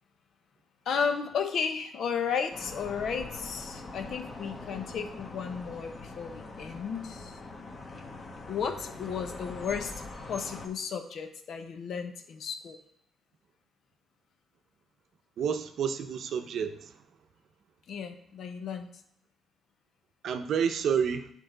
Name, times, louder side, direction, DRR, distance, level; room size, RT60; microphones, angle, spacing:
voice 1, 0.8-7.4 8.5-9.9 10.3-12.8 17.9-18.9, left 6 dB, 65° left, 0.9 m, -34 dB
sound 1, 2.5-10.7, left 2 dB, 40° left, 1.2 m, -43 dB
voice 2, 15.4-17.0 20.2-21.3, right 7 dB, 65° right, 0.7 m, -29 dB
9.2 x 4.6 x 3.9 m
cardioid pair, 90°, 0 cm